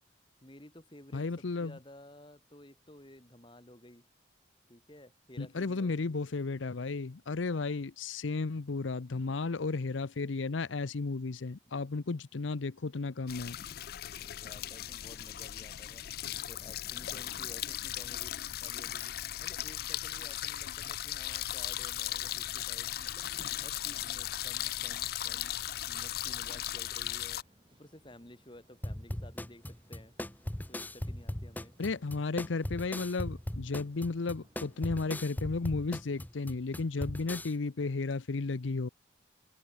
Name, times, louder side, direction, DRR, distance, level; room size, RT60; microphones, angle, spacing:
voice 1, 0.4-1.3 1.6-4.1 4.7-6.2 14.2-30.1 30.7-31.7, left 1 dB, 25° left, 3.0 m, -54 dB
voice 2, 1.1-1.8 5.4-13.6 31.8-38.9, left 3 dB, 85° left, 0.7 m, -34 dB
sound 1, 13.3-27.4, left 13 dB, 50° left, 0.4 m, -37 dB
sound 2, 22.3-34.9, equal, 25° right, 5.0 m, -66 dB
sound 3, 28.8-37.5, left 1 dB, 10° left, 0.7 m, -39 dB
head